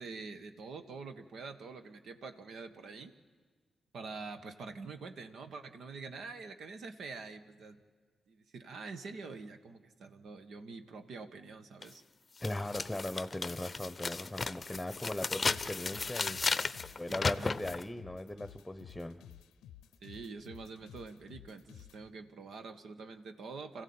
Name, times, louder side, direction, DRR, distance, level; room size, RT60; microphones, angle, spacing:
voice 1, 0.0-3.1 3.9-7.8 8.3-12.0 16.8-17.6 20.0-23.8, right 4 dB, 75° right, 8 dB, 1.3 m, -46 dB
sound 1, 11.8-11.9 12.4-17.8, left 4 dB, 45° left, 0.6 m, -35 dB
voice 2, 12.4-19.2, left 1 dB, 10° left, 10 dB, 1.1 m, -39 dB
sound 2, 15.5-22.0, left 11 dB, 85° left, 0.6 m, -54 dB
26.5 x 15.0 x 8.8 m, 1.6 s
supercardioid pair, 40°, 0 cm